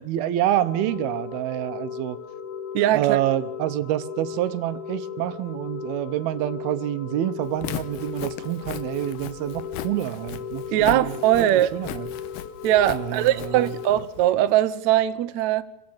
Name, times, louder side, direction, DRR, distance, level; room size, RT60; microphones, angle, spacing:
voice 1, 0.0-2.2 2.9-12.1 12.9-13.6, right 13 dB, 85° right, 2.8 m, -27 dB
sound 1, 0.6-14.1, left 7 dB, 60° left, 3.1 m, -36 dB
voice 2, 2.7-3.2 10.7-11.7 12.6-15.6, right 13 dB, 70° right, 1.8 m, -21 dB
Walk footsteps, 7.5-14.3, left 11 dB, 80° left, 2.7 m, -38 dB
27.0 x 15.5 x 7.2 m
omnidirectional pair, 4.3 m